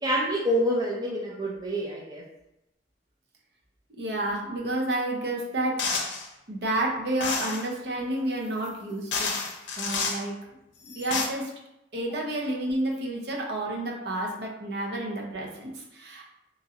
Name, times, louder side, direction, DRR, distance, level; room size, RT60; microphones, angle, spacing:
voice 1, 0.0-2.2, equal, 20° right, -4 dB, 0.4 m, -27 dB
voice 2, 4.0-5.8 6.5-9.3 9.8-10.3 10.8-11.5 11.9-16.3, right 1 dB, 65° right, -2 dB, 0.6 m, -30 dB
sound 1, 5.8-6.3 7.2-7.7 8.6-8.7 9.1-10.2 10.9-11.3, left 4 dB, 85° left, 0.5 m, -29 dB
3.0 x 2.4 x 2.7 m, 0.86 s
head